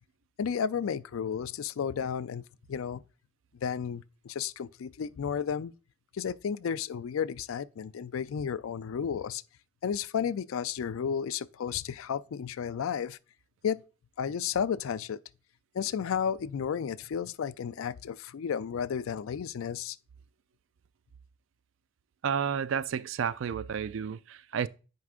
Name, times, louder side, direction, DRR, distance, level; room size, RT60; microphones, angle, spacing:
voice 1, 0.4-2.4 2.7-3.0 3.5-5.7 6.1-9.4 9.8-13.2 13.6-13.8 14.2-15.2 15.7-20.0, left 7 dB, 85° left, 0.4 m, -32 dB
voice 2, 22.2-24.7, right 7 dB, 70° right, 0.4 m, -31 dB
9.5 x 4.8 x 2.4 m
head